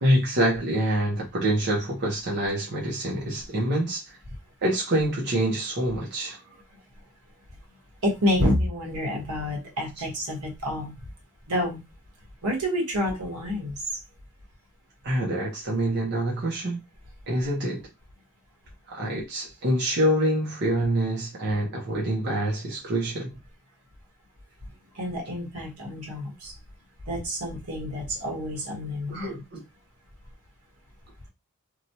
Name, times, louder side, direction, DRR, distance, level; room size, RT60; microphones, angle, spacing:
voice 1, 0.0-4.1 4.6-6.4 15.0-16.8 17.3-17.9 18.9-23.3 29.1-29.6, right 1 dB, 50° right, 0.7 m, -26 dB
voice 2, 8.0-10.9 11.5-11.8 12.4-13.8 24.9-26.5 27.1-29.4, left 1 dB, 80° right, 1.3 m, -28 dB
3.0 x 2.3 x 2.7 m
head